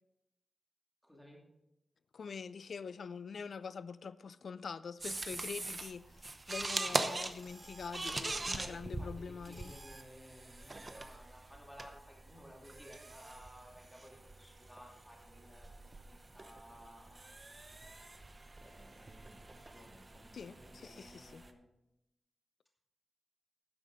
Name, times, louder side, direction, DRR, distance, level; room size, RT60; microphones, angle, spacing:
voice 1, 1.0-1.4 8.6-17.4 18.6-21.6, equal, 5° left, 2.6 m, -57 dB
voice 2, 2.1-6.2 6.5-9.7 20.3-21.4, left 5 dB, 70° left, 0.4 m, -45 dB
sound 1, 5.0-21.5, right 2 dB, 25° right, 0.8 m, -43 dB
12.0 x 9.8 x 4.0 m
wide cardioid pair, 160°, 0 cm